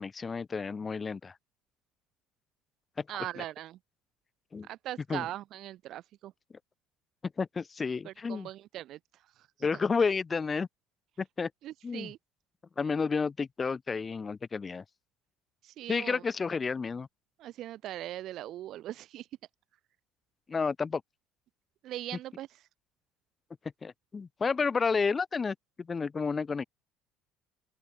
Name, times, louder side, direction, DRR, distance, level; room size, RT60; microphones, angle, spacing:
voice 1, 0.0-1.3 3.0-3.1 3.4-3.5 4.5-4.7 5.1-5.3 7.4-8.5 9.6-10.7 11.2-11.5 11.8-12.1 12.8-14.8 15.9-17.1 20.5-21.0 23.8-26.6, left 5 dB, 20° left, 0.3 m, -31 dB
voice 2, 3.1-3.8 4.7-6.3 8.0-9.0 11.6-12.2 15.6-16.2 17.4-19.3 21.8-22.5, right 13 dB, 55° right, 0.4 m, -40 dB
open air
cardioid pair, 135°, 0 cm